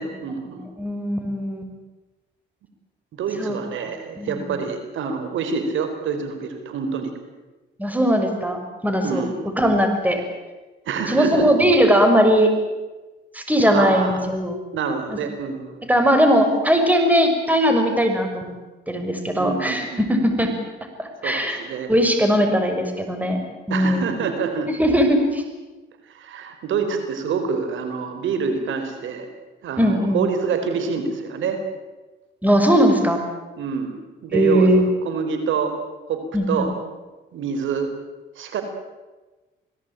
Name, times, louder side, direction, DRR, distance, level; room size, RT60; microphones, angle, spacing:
voice 1, 0.0-0.6 3.2-7.1 9.0-9.3 10.9-11.5 13.7-14.2 14.7-15.9 19.4-20.2 21.2-21.9 22.3-22.7 23.7-24.7 26.1-29.3 29.6-31.6 33.6-34.0 34.2-34.7 35.0-35.7 36.1-36.2 36.5-36.7 37.3-37.9 38.4-38.6, right 6 dB, 75° right, 7 dB, 4.4 m, -26 dB
voice 2, 0.8-1.7 3.4-3.6 3.8-4.5 7.8-9.2 9.6-10.2 11.1-12.5 13.3-14.6 15.1-15.2 15.9-18.5 18.9-20.5 21.0-21.6 21.9-23.4 23.7-24.0 24.8-25.4 29.8-30.2 32.4-33.2 34.3-34.9 36.3-36.7, equal, 10° right, 5 dB, 6.0 m, -19 dB
27.0 x 18.5 x 9.1 m, 1.2 s
cardioid pair, 90°, 20 cm